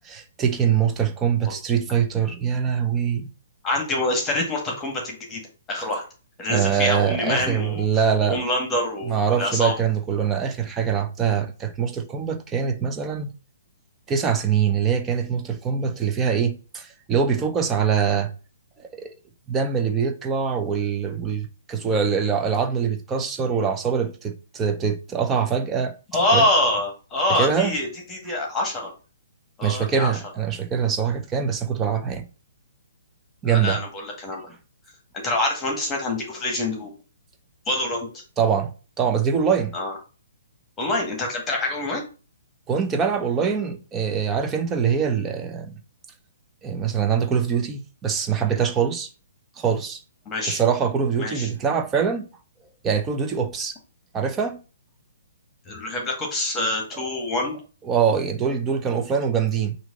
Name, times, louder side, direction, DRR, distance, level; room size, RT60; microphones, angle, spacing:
voice 1, 0.0-3.3 5.8-5.9 6.5-8.4 9.1-13.3 14.1-18.3 18.8-19.1 19.5-25.9 26.3-26.5 27.4-27.7 29.6-32.3 33.4-33.8 38.4-38.7 39.0-39.7 42.7-45.8 46.6-49.1 49.6-50.0 50.5-52.3 52.8-53.8 54.1-54.6 57.9-59.8, right 7 dB, 15° right, 0.9 m, -23 dB
voice 2, 3.6-5.4 5.7-6.0 6.4-9.8 26.1-28.9 29.6-30.1 33.4-34.4 35.2-36.9 37.7-38.2 39.7-39.9 40.8-42.0 50.3-50.6 51.2-51.5 55.7-57.6, left 1 dB, 15° left, 1.9 m, -25 dB
6.1 x 2.9 x 5.3 m
figure-of-eight pair, 125°, 0 cm